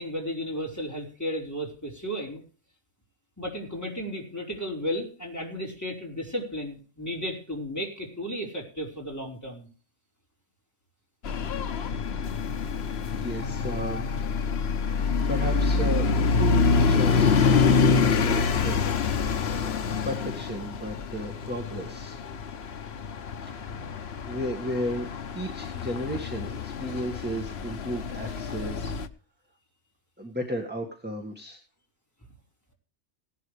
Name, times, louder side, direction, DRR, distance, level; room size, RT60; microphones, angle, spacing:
voice 1, 0.0-2.4 3.4-9.7, equal, 15° left, -2 dB, 4.9 m, -34 dB
sound 1, 11.2-29.1, left 5 dB, 65° left, 1.1 m, -26 dB
voice 2, 13.2-14.2 14.9-15.0 15.3-22.2 23.4-25.1 25.3-28.9 30.2-31.6, equal, 10° right, 2 dB, 1.8 m, -34 dB
18.0 x 11.5 x 3.3 m, 0.40 s
omnidirectional pair, 1.2 m